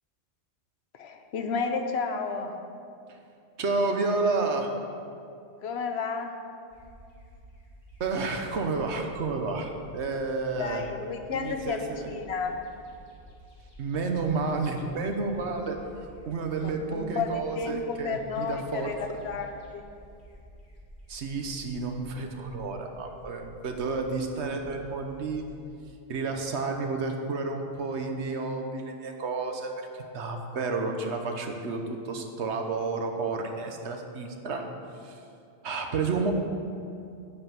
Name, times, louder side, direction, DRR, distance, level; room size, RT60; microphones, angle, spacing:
voice 1, 0.9-2.5 5.6-6.4 10.6-12.5 16.6-19.8, left 5 dB, 70° left, 5 dB, 1.1 m, -32 dB
voice 2, 3.6-4.7 8.0-10.9 11.3-12.1 13.8-18.9 21.1-25.4 26.1-34.6 35.0-35.2 35.6-36.3, right 3 dB, 80° right, 4 dB, 1.3 m, -31 dB
sound 1, 6.7-25.6, equal, 45° left, 2.0 m, -52 dB
10.5 x 5.5 x 7.5 m, 2.5 s
omnidirectional pair, 1.1 m